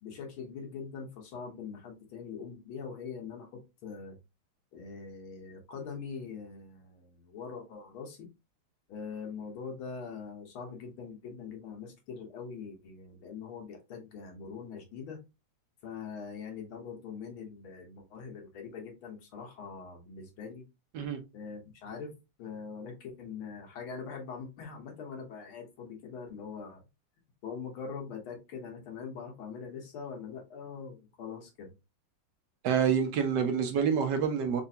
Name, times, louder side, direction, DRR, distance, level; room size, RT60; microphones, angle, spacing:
voice 1, 0.0-4.2 4.7-8.3 8.9-15.2 15.8-20.6 21.3-22.1 22.4-26.8 27.4-31.7, left 5 dB, 90° left, 1.9 m, -43 dB
voice 2, 32.6-34.6, right 7 dB, 70° right, 1.1 m, -27 dB
4.4 x 2.5 x 2.7 m
omnidirectional pair, 2.2 m